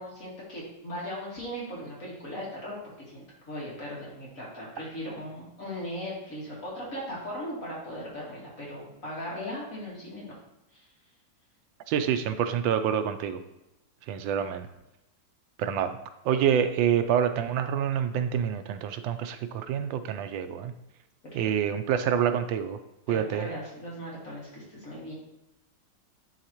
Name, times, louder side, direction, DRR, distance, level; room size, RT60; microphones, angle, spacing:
voice 1, 0.0-10.3 10.7-10.8 23.1-25.1, equal, 45° left, -5 dB, 2.3 m, -38 dB
voice 2, 11.9-13.4 14.1-14.7 15.6-16.0 16.2-20.7 21.3-22.8 23.1-23.5, right 8 dB, 90° right, 9 dB, 1.3 m, -27 dB
10.5 x 4.0 x 2.9 m, 0.92 s
omnidirectional pair, 2.0 m